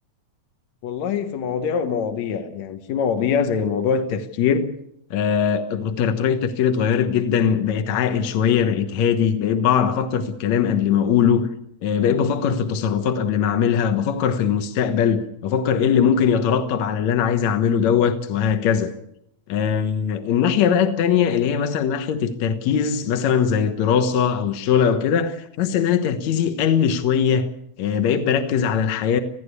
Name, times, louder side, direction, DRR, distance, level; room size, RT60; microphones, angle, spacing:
voice 1, 0.8-4.7 5.1-11.5 11.8-18.9 19.5-27.5 27.8-29.2, left 7 dB, 70° left, 2.5 m, -21 dB
27.0 x 16.5 x 8.3 m
omnidirectional pair, 3.4 m